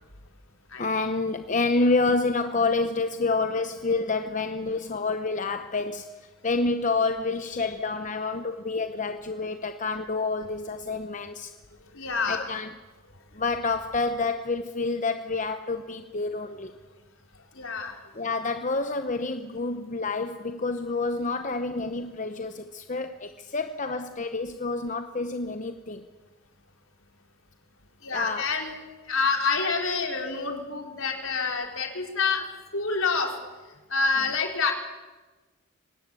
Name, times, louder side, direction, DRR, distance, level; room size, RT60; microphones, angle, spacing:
voice 1, 0.8-11.5 12.3-12.7 13.3-16.7 18.1-26.1 28.1-28.5, left 3 dB, 35° left, 8 dB, 0.9 m, -28 dB
voice 2, 11.9-12.5 17.6-18.0 28.0-28.7 29.1-32.4 32.7-33.3 33.9-34.7, left 4 dB, 70° left, 3 dB, 3.9 m, -27 dB
24.0 x 19.5 x 8.3 m, 1.3 s
head